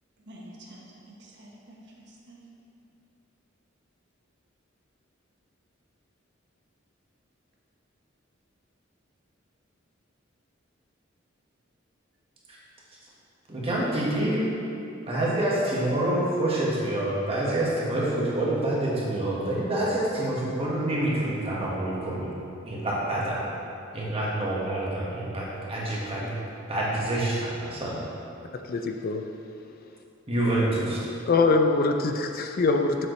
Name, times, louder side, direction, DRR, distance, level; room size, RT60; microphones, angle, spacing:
voice 1, 0.3-2.4, right 1 dB, 60° right, -3 dB, 1.2 m, -48 dB
voice 2, 13.5-14.4 15.1-22.3 22.6-23.5 23.9-26.3 26.7-28.0 30.3-31.0, right 1 dB, 30° right, -6 dB, 1.5 m, -27 dB
voice 3, 28.5-29.2 31.3-33.1, left 3 dB, 50° left, 5 dB, 0.4 m, -23 dB
7.3 x 6.8 x 3.1 m, 2.6 s
head